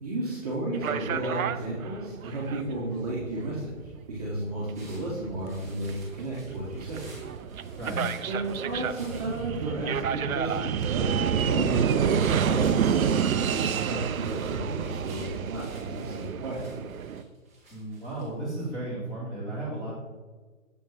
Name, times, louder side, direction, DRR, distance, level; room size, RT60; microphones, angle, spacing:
voice 1, 0.0-3.7 4.1-7.0 8.3-13.2 13.5-16.8, right 1 dB, 30° right, -6 dB, 1.2 m, -33 dB
sound 1, 0.7-17.2, right 8 dB, 85° right, 0.5 m, -29 dB
sound 2, 4.7-19.0, right 2 dB, 10° right, 0.8 m, -53 dB
voice 2, 17.7-19.9, right 2 dB, 10° left, -9 dB, 1.9 m, -34 dB
6.8 x 4.5 x 3.9 m, 1.4 s
figure-of-eight pair, 155°, 41 cm